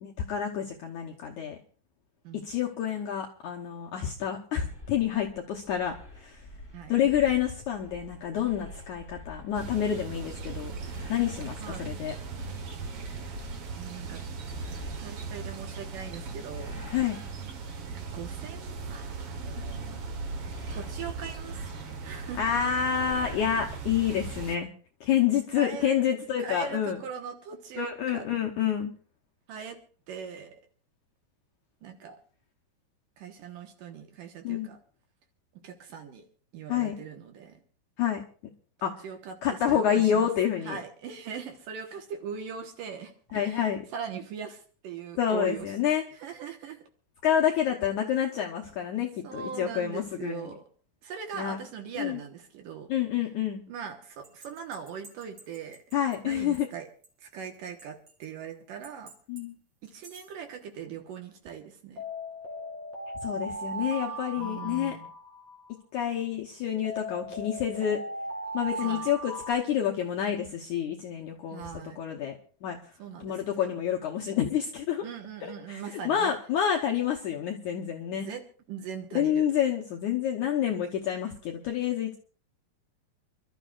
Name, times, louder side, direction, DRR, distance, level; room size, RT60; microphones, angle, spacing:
voice 1, 0.0-1.6 2.3-6.5 6.9-10.7 11.1-12.2 16.9-17.2 22.4-24.7 25.0-27.0 27.8-28.9 34.4-34.7 36.7-36.9 38.0-38.2 38.8-39.1 39.4-40.8 43.3-43.8 45.2-46.0 47.2-50.5 51.3-51.6 52.0-52.2 52.9-53.7 55.9-56.7 59.3-59.5 63.2-65.0 65.9-68.0 68.5-72.9 73.2-75.1 75.7-78.3 79.1-82.2, left 9 dB, 75° left, 1 dB, 1.8 m, -28 dB
sound 1, 4.6-24.5, left 2 dB, 5° left, 3.0 m, -47 dB
sound 2, 9.5-24.6, right 4 dB, 85° right, 1.3 m, -38 dB
voice 2, 13.8-14.2 14.5-16.7 18.1-20.0 20.7-21.7 22.0-22.6 25.6-26.0 26.4-28.3 29.5-29.8 30.1-30.6 31.8-32.2 33.2-34.8 35.6-36.3 36.5-37.6 39.0-39.4 39.7-39.8 40.1-40.3 40.7-43.6 43.9-45.7 46.2-46.8 49.2-50.6 51.0-52.9 53.7-55.8 56.2-56.9 57.2-59.1 59.8-62.0 64.4-65.1 68.8-69.1 71.5-72.0 73.0-73.7 75.0-76.3 78.1-78.4 78.7-79.5, right 7 dB, 65° right, 5 dB, 2.6 m, -40 dB
sound 3, 54.2-56.1 56.5-56.6 57.0-57.1 57.8-58.2 58.8-59.4 59.9-60.2 62.0-65.7 66.8-69.5, right 1 dB, 40° right, 3.3 m, -38 dB
28.0 x 12.5 x 2.5 m, 0.41 s
omnidirectional pair, 4.7 m